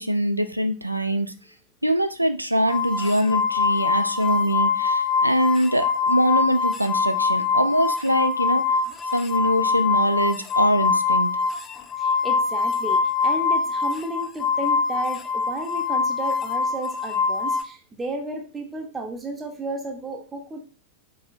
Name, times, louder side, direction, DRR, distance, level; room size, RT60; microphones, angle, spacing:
voice 1, 0.0-1.3 1.8-8.6 9.1-11.3, equal, 85° right, 9 dB, 0.4 m, -23 dB
sound 1, 2.7-17.6, left 4 dB, 25° left, 0.4 m, -23 dB
voice 2, 12.0-20.6, right 2 dB, 15° right, 2 dB, 0.7 m, -33 dB
4.0 x 3.7 x 2.4 m, 0.35 s
figure-of-eight pair, 90°, 0 cm